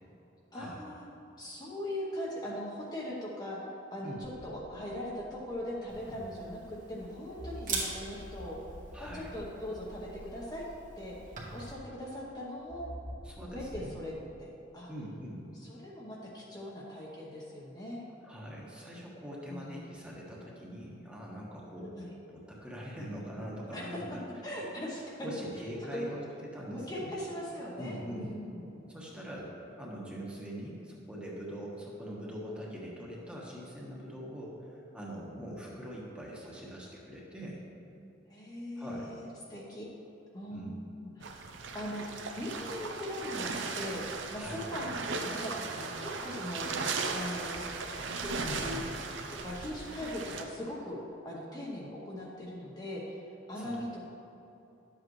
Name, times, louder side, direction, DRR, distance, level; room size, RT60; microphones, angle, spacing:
voice 1, 0.5-1.1 1.4-8.6 9.0-10.7 11.0-12.9 13.5-14.1 14.4-14.9 15.5-18.0 19.5-19.9 21.8-22.2 23.7-24.0 24.4-25.3 25.9-26.2 26.7-28.8 38.3-39.9 40.3-41.4 41.7-42.0 42.4-46.7 47.1-47.6 48.1-48.8 49.4-54.0, left 1 dB, 20° left, -5 dB, 0.9 m, -40 dB
sound 1, 4.2-6.8 7.4-12.0 12.7-13.9, equal, 70° left, 2.2 m, -49 dB
Camera, 5.9-11.7, right 3 dB, 40° right, 1.6 m, -43 dB
voice 2, 8.9-9.3 13.2-14.0 14.9-15.4 18.2-22.0 22.3-24.2 25.2-27.1 27.8-28.3 28.9-37.6 38.8-39.1 40.5-40.7 44.4-44.6 48.4-48.8 53.6-53.8, equal, 5° right, -4 dB, 1.2 m, -42 dB
sound 2, 41.2-50.4, right 4 dB, 70° right, 0.7 m, -37 dB
11.5 x 7.7 x 3.2 m, 2.9 s
head